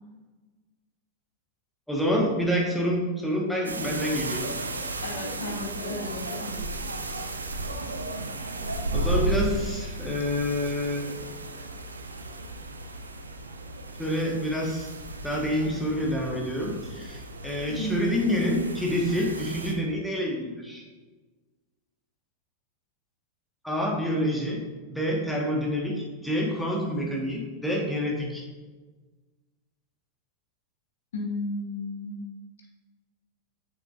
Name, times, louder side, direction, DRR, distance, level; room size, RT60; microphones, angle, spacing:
voice 1, 1.9-4.5 8.9-11.2 14.0-14.9 15.2-20.8 23.6-24.6 24.9-28.4, equal, ahead, -2 dB, 1.5 m, -27 dB
sound 1, 3.6-19.7, right 2 dB, 75° right, 0.5 m, -34 dB
voice 2, 5.0-6.5 17.7-18.1 31.1-32.1, left 1 dB, 65° left, 0 dB, 1.4 m, -33 dB
7.6 x 6.4 x 2.6 m, 1.3 s
figure-of-eight pair, 90°, 0 cm